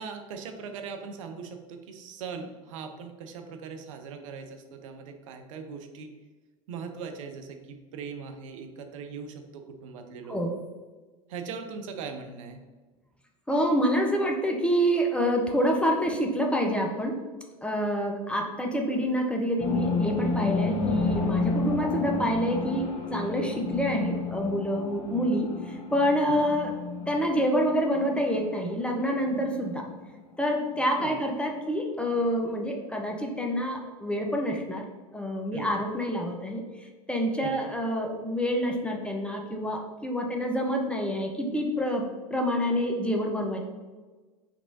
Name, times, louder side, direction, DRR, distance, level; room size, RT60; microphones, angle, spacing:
voice 1, 0.0-6.1 6.7-10.4 11.3-12.6 26.3-26.4 31.0-31.2 35.5-35.7 37.4-37.5, right 5 dB, 65° right, 6 dB, 0.4 m, -40 dB
voice 2, 13.5-17.2 17.6-26.8 27.1-29.8 30.4-34.8 35.1-42.1 42.3-43.6, equal, 5° left, 1 dB, 0.4 m, -27 dB
sound 1, 19.6-30.1 30.4-30.5 30.8-30.9, left 3 dB, 50° left, 0.7 m, -31 dB
3.4 x 3.0 x 2.6 m, 1.3 s
figure-of-eight pair, 80°, 18 cm